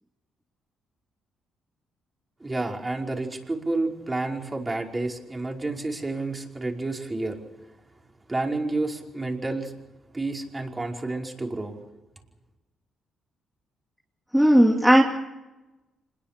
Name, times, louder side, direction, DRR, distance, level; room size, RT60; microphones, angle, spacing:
voice 1, 2.4-7.3 8.3-9.7 10.1-11.7, right 2 dB, 20° right, 1 dB, 5.1 m, -30 dB
voice 2, 14.3-15.0, equal, 5° right, 0 dB, 2.7 m, -16 dB
26.5 x 21.0 x 6.8 m, 1.0 s
cardioid pair, 90°, 0 cm